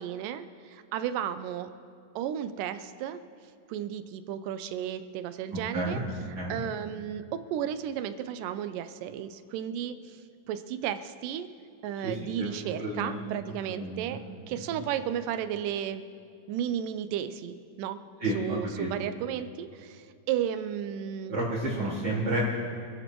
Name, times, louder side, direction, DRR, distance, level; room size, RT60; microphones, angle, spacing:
voice 1, 0.0-1.7 2.2-3.2 3.7-6.0 6.5-10.2 10.5-11.5 11.8-16.1 16.5-18.0 18.3-21.3, right 9 dB, 80° right, 11 dB, 2.1 m, -33 dB
voice 2, 5.5-6.0 6.3-6.6 12.0-13.2 13.7-14.0 14.6-14.8 18.2-18.9 21.3-22.4, right 2 dB, 40° right, -11 dB, 4.1 m, -31 dB
26.5 x 13.5 x 3.1 m, 2.4 s
omnidirectional pair, 4.1 m